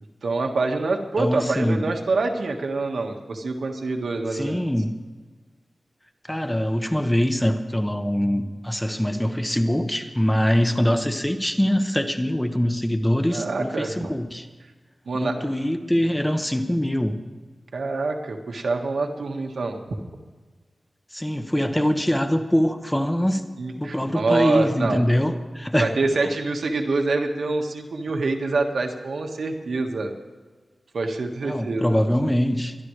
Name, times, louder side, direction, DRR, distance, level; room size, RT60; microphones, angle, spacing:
voice 1, 0.2-4.6 13.3-14.1 15.0-15.4 17.7-19.8 23.6-25.0 25.8-30.1 30.9-31.9, right 3 dB, 85° right, 3 dB, 1.6 m, -26 dB
voice 2, 1.2-1.9 4.3-5.0 6.3-14.5 15.1-17.2 21.1-23.4 23.8-25.9 26.2-26.3 31.4-32.8, equal, 10° left, 7 dB, 1.0 m, -23 dB
23.0 x 12.0 x 3.3 m, 1.4 s
wide cardioid pair, 105°, 0 cm